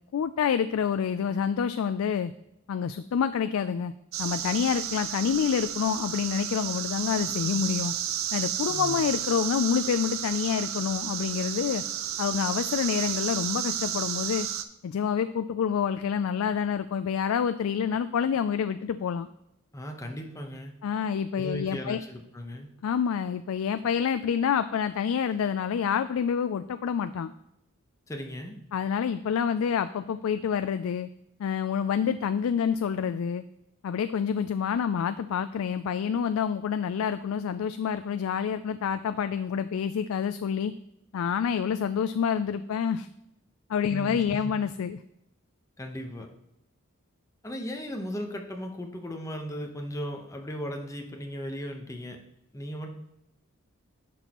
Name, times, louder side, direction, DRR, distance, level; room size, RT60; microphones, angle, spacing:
voice 1, 0.1-2.3 2.7-3.9 4.2-7.9 8.3-11.8 12.2-14.5 14.8-19.3 20.8-22.0 22.8-27.3 28.7-31.1 31.4-33.4 33.8-40.7 41.1-43.1 43.7-45.0, left 7 dB, 85° left, 11 dB, 0.3 m, -27 dB
sound 1, 4.1-14.6, right 10 dB, 75° right, 0.5 m, -32 dB
voice 2, 8.7-9.1 19.7-20.7 21.4-22.7 28.1-28.6 43.9-44.5 45.8-46.3 47.4-52.2 52.5-52.9, equal, 15° left, 3 dB, 0.9 m, -37 dB
10.5 x 6.2 x 3.0 m, 0.85 s
head